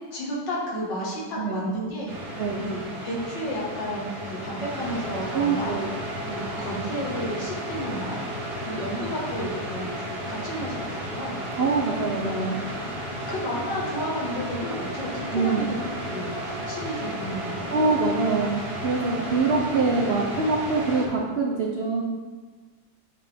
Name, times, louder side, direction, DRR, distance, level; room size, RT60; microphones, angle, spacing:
voice 1, 0.1-5.7 6.2-8.2 8.7-11.4 12.5-12.9 13.3-15.8 16.1-17.7 19.1-19.3, equal, 75° left, -5 dB, 2.4 m, -32 dB
sound 1, 2.1-21.1, equal, 45° right, 1.5 m, -33 dB
voice 2, 5.3-5.9 11.6-12.6 15.3-15.7 17.7-22.0, right 4 dB, 70° right, -1 dB, 0.5 m, -24 dB
8.9 x 5.1 x 3.5 m, 1.4 s
omnidirectional pair, 2.0 m